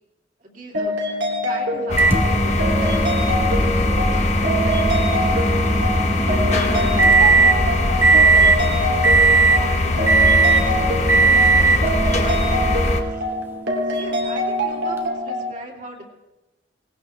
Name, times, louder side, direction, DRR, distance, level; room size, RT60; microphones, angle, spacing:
voice 1, 0.4-1.0 1.4-3.1 3.7-5.3 6.1-8.9 9.5-13.3 13.9-16.0, right 1 dB, 45° right, -1 dB, 2.8 m, -39 dB
sound 1, 0.7-15.5, equal, 75° right, 2.6 m, -25 dB
sound 2, 1.9-13.0, left 2 dB, 40° left, 1.3 m, -21 dB
Microwave oven, 2.0-7.6 8.0-8.6 9.0-9.7 10.1-10.7 11.1-11.9 12.9-13.0 15.0-15.1, right 4 dB, 10° right, 1.1 m, -18 dB
19.0 x 18.5 x 3.3 m, 1.0 s
head